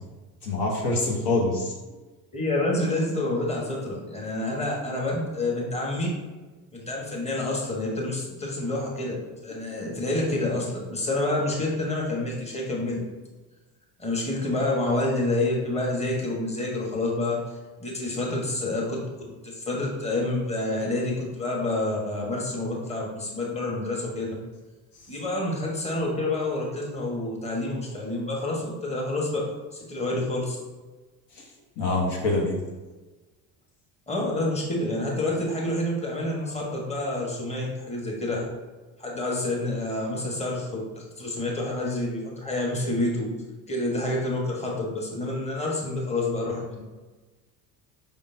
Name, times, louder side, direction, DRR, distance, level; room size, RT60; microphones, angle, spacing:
voice 1, 0.4-1.7 31.8-32.6, left 2 dB, 55° left, -2 dB, 1.2 m, -25 dB
voice 2, 2.3-6.1 6.7-13.0 14.0-17.4 17.8-19.0 19.4-24.3 25.1-29.4 29.7-30.6 34.1-38.5 39.0-43.3 43.7-46.8, left 2 dB, 15° left, -2 dB, 1.3 m, -28 dB
5.4 x 3.6 x 2.7 m, 1.2 s
hypercardioid pair, 70°, 49 cm